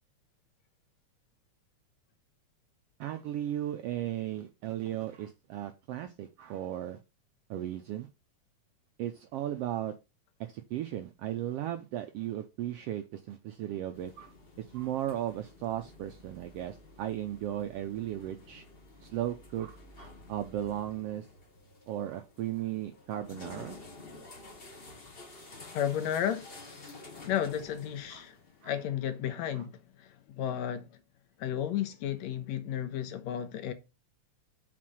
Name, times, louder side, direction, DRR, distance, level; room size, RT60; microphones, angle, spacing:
voice 1, 3.0-7.0 7.5-8.1 9.0-10.0 10.4-18.6 19.0-21.3 21.9-23.8 28.1-28.3 28.6-28.7 29.5-29.6, right 12 dB, 85° right, 1.3 m, -36 dB
sound 1, 13.9-28.9, left 3 dB, 55° left, 0.6 m, -51 dB
voice 2, 25.7-26.5 27.3-28.4 28.6-30.9 31.4-33.7, left 10 dB, 75° left, 1.9 m, -33 dB
6.0 x 4.2 x 6.2 m
omnidirectional pair, 3.3 m